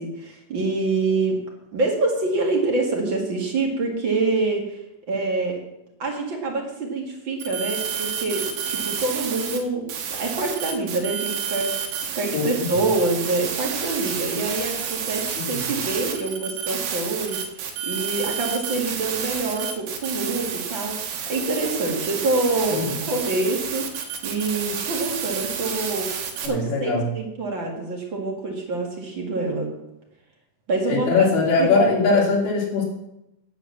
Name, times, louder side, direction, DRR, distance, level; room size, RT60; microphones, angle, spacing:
voice 1, 0.0-1.4 1.7-4.8 5.1-5.6 6.0-26.1 26.4-29.7 30.7-31.1 31.6-31.9 32.1-32.2, right 3 dB, 40° right, 0 dB, 2.6 m, -26 dB
sound 1, 7.4-9.6 9.9-26.5, right 7 dB, 90° right, 3.1 m, -30 dB
voice 2, 26.4-27.1 30.9-32.8, left 4 dB, 90° left, -3 dB, 4.6 m, -21 dB
9.0 x 9.0 x 7.3 m, 0.86 s
omnidirectional pair, 3.8 m